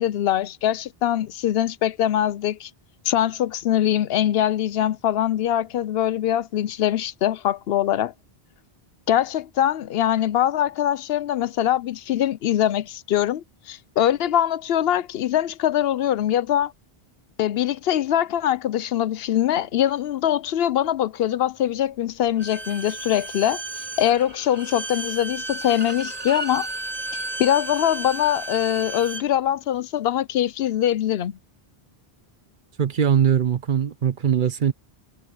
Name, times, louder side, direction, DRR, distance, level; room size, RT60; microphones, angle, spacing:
voice 1, 0.0-2.7 3.1-8.1 9.1-16.7 17.4-23.6 24.0-26.7 27.1-31.4, left 11 dB, 75° left, 0.8 m, -23 dB
Bowed string instrument, 22.4-29.3, right 2 dB, 40° right, 2.3 m, -33 dB
voice 2, 32.8-34.7, right 8 dB, 55° right, 0.9 m, -21 dB
omnidirectional pair, 1.0 m